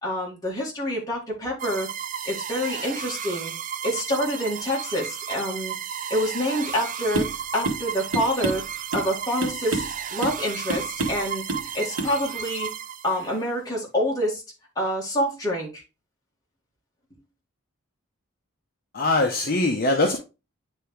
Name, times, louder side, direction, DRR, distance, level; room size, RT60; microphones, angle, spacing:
voice 1, 0.0-1.9 2.3-3.5 3.8-5.7 6.1-7.2 7.5-8.6 8.9-9.9 10.1-11.4 11.7-12.7 13.0-14.4 14.8-15.8, equal, 15° left, 2.1 m, -27 dB
sound 1, 1.6-13.4, right 8 dB, 35° right, 0.3 m, -34 dB
sound 2, 7.1-7.4 7.6-7.8 8.1-9.1 9.4-9.9 10.2-10.4 10.7-11.2 11.5-11.7 12.0-12.1, right 2 dB, 80° right, 1.5 m, -28 dB
voice 2, 18.9-20.2, left 2 dB, 40° left, 0.7 m, -22 dB
9.5 x 3.4 x 3.2 m
head